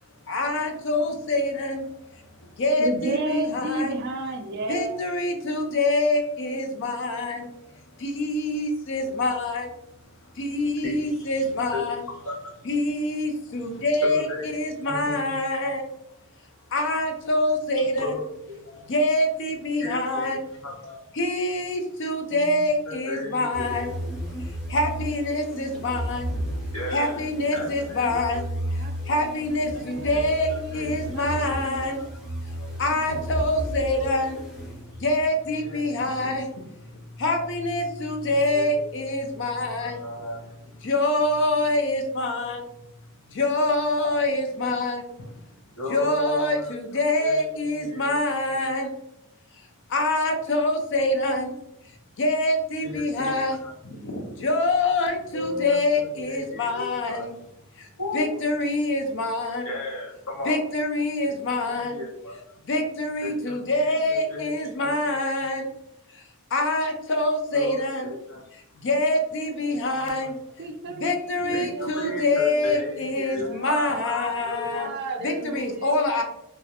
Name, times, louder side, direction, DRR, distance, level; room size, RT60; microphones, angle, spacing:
voice 1, 0.3-3.9 4.7-9.7 10.3-12.0 12.6-15.8 16.7-18.2 18.9-20.4 21.1-23.9 24.4-26.3 26.9-28.5 28.7-32.0 32.8-34.4 35.0-36.7 37.1-40.0 40.8-42.6 43.3-45.4 45.9-48.9 49.6-51.5 51.8-53.6 53.8-57.3 57.8-59.7 60.4-62.0 62.7-65.7 66.1-66.2 66.5-68.1 68.7-70.4 70.9-74.9 75.2-76.2, left 2 dB, 55° left, 0.5 m, -25 dB
voice 2, 2.8-4.9 28.8-31.9 70.6-75.9, right 2 dB, 45° right, 0.3 m, -34 dB
voice 3, 10.8-11.4 11.7-12.5 14.0-14.6 14.8-15.4 18.0-18.2 18.5-18.8 19.8-20.3 20.6-21.0 22.3-23.9 26.7-28.4 30.0-32.1 33.9-34.5 35.6-35.8 38.3-38.8 39.8-40.4 45.8-46.7 47.2-47.4 47.8-48.2 48.5-48.6 52.8-53.7 55.3-57.2 58.0-58.3 59.6-60.6 61.2-61.7 61.9-62.4 63.2-65.1 67.5-68.4 69.7-69.8 70.2-70.3 71.5-74.9 75.2-75.3, left 2 dB, 75° left, 1.0 m, -36 dB
sound 1, 23.5-35.3, equal, ahead, 0.6 m, -34 dB
2.3 x 2.0 x 2.8 m
head